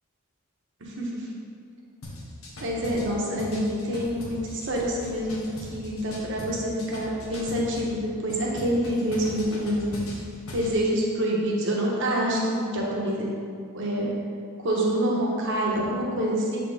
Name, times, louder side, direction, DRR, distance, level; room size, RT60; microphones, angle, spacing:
voice 1, 0.8-1.3 2.6-9.9 10.5-13.3 13.7-14.1 14.6-16.6, equal, 60° right, -3 dB, 1.2 m, -27 dB
sound 1, 2.0-7.9 8.3-10.7, left 1 dB, 80° left, 1.2 m, -40 dB
7.2 x 4.4 x 3.6 m, 2.3 s
head